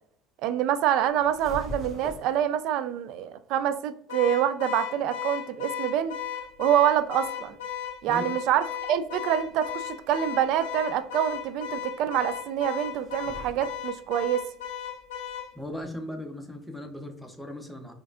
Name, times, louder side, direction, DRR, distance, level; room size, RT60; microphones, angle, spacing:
voice 1, 0.4-6.1 6.6-7.6 8.0-14.4, right 10 dB, 65° right, 12 dB, 0.3 m, -26 dB
sound 1, 1.1-2.4 5.9-16.0, equal, 35° right, 1.4 m, -47 dB
Car / Alarm, 4.1-15.5, left 9 dB, 85° left, 0.6 m, -35 dB
voice 2, 15.5-17.9, left 1 dB, ahead, 3 dB, 0.7 m, -38 dB
4.6 x 2.5 x 2.5 m, 0.68 s
hypercardioid pair, 75°, 0 cm